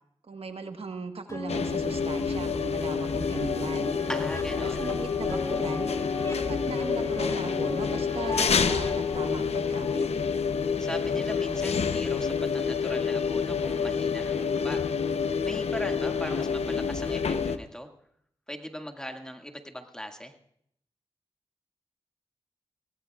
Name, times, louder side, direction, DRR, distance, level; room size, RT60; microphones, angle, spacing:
voice 1, 0.3-4.0 4.6-5.9 6.5-10.1, right 4 dB, 65° right, 6 dB, 1.4 m, -38 dB
sound 1, 1.3-9.3, left 3 dB, 30° left, 2.6 m, -35 dB
sound 2, 1.5-17.6, left 6 dB, 80° left, 0.8 m, -28 dB
voice 2, 4.1-4.9 10.8-14.8 15.4-17.9 18.5-20.3, equal, 5° left, 4 dB, 2.0 m, -39 dB
24.5 x 17.5 x 2.4 m, 0.69 s
cardioid pair, 45°, 10 cm